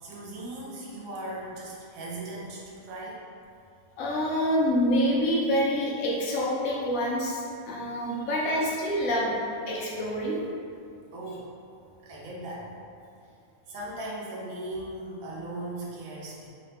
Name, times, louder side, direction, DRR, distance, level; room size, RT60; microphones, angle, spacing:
voice 1, 0.0-3.2 8.1-8.4 11.1-11.5 12.0-12.7 13.7-16.5, right 1 dB, 80° right, -5 dB, 1.1 m, -38 dB
voice 2, 4.0-9.4 9.7-10.4, equal, 80° left, -4 dB, 1.0 m, -26 dB
4.1 x 2.4 x 3.2 m, 2.5 s
omnidirectional pair, 1.4 m